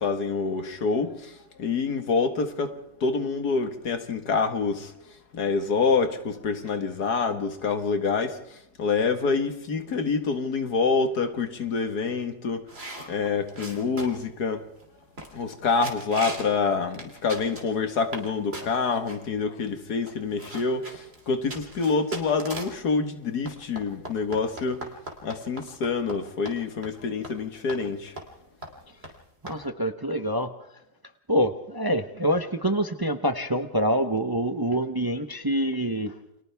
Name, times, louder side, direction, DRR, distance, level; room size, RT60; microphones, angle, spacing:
voice 1, 0.0-2.7 3.0-4.9 5.3-12.7 13.1-14.7 15.3-28.2, left 4 dB, 80° left, 2.2 m, -27 dB
sound 1, 12.7-14.3 14.8-14.9 15.2-15.5 15.8-16.5 16.9-18.3 18.5-19.2 19.8-19.9 20.1-22.8 23.5-26.2 26.5-26.6 26.8-27.0 27.2-27.4 27.7-27.8 28.2-28.4 28.6-28.7 29.0-29.1 29.5-29.6, right 1 dB, 40° right, 3.3 m, -38 dB
voice 2, 29.4-30.5 31.3-36.1, equal, 20° right, 0.8 m, -26 dB
29.5 x 25.5 x 3.5 m
omnidirectional pair, 1.7 m